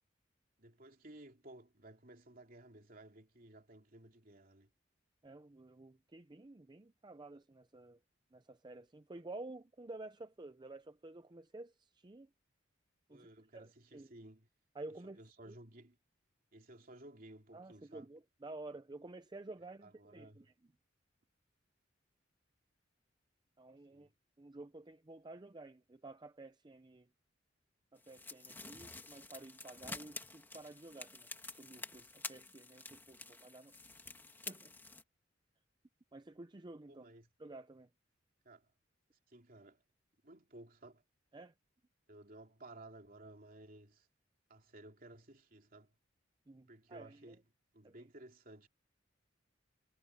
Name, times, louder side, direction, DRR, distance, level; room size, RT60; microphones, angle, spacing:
voice 1, 0.6-4.7 13.1-14.5 15.2-16.0 16.5-18.1 19.8-20.4 23.9-24.1 36.9-37.3 38.4-38.7 39.3-39.8 40.2-41.0 42.1-44.1 44.5-45.9 46.7-47.4 47.7-48.7, right 1 dB, 45° right, 3.1 m, -56 dB
voice 2, 5.2-8.0 8.3-12.3 13.1-13.3 13.5-14.1 14.7-15.2 15.5-15.6 17.5-20.5 23.6-24.1 24.4-27.1 27.9-33.7 34.5-34.7 36.1-37.0 37.4-37.9 41.3-41.5 46.5-47.4 47.8-48.1, right 2 dB, 25° right, 0.5 m, -51 dB
sound 1, 28.0-35.0, left 3 dB, 10° left, 2.2 m, -49 dB
head